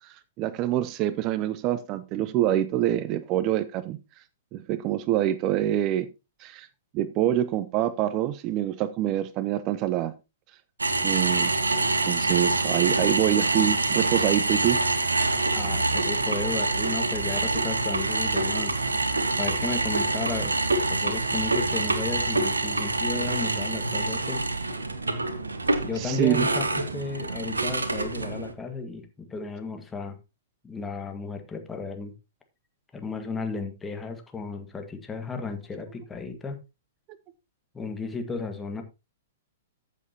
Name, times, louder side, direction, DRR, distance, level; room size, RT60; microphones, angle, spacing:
voice 1, 0.0-4.0 4.5-6.1 6.4-6.7 6.9-10.1 11.0-11.5 12.0-14.8 25.9-26.5, right 12 dB, 35° right, 0.6 m, -26 dB
sound 1, 10.8-28.5, right 2 dB, 85° right, 1.2 m, -26 dB
voice 2, 15.5-18.7 19.4-20.5 20.9-24.4 25.8-30.2 30.6-32.1 32.9-36.6 37.7-38.8, left 4 dB, 15° left, 1.7 m, -34 dB
14.0 x 7.3 x 2.9 m
figure-of-eight pair, 110°, 0 cm